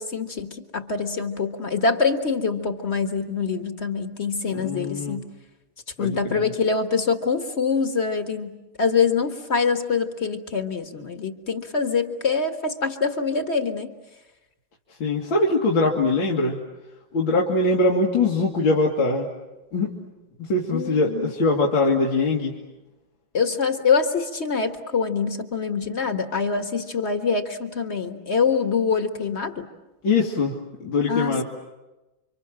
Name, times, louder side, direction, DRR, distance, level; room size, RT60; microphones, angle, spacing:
voice 1, 0.0-5.3 6.0-13.9 20.7-21.3 23.3-29.7 31.1-31.4, left 5 dB, 35° left, 7 dB, 1.7 m, -25 dB
voice 2, 4.5-5.2 6.0-6.4 15.0-16.6 17.1-19.3 19.7-19.9 20.4-22.5 30.0-30.5 30.8-31.4, left 3 dB, 80° left, -2 dB, 2.9 m, -22 dB
29.5 x 25.5 x 7.6 m, 1.0 s
omnidirectional pair, 2.1 m